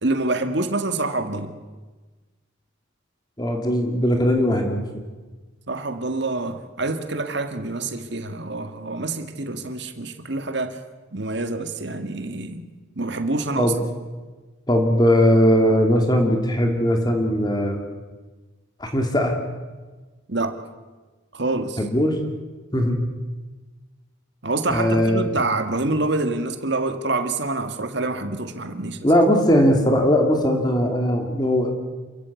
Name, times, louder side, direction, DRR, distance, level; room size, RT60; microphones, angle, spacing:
voice 1, 0.0-1.6 5.7-10.8 11.1-12.7 13.0-13.7 20.3-20.6 21.3-21.8 24.4-29.0, right 2 dB, 60° right, 7 dB, 2.0 m, -26 dB
voice 2, 3.4-4.8 13.6-13.8 14.7-17.8 18.8-19.3 21.8-22.2 22.7-23.0 24.7-25.4 29.0-31.7, equal, 20° left, 3 dB, 2.6 m, -19 dB
28.0 x 15.0 x 8.4 m, 1.3 s
head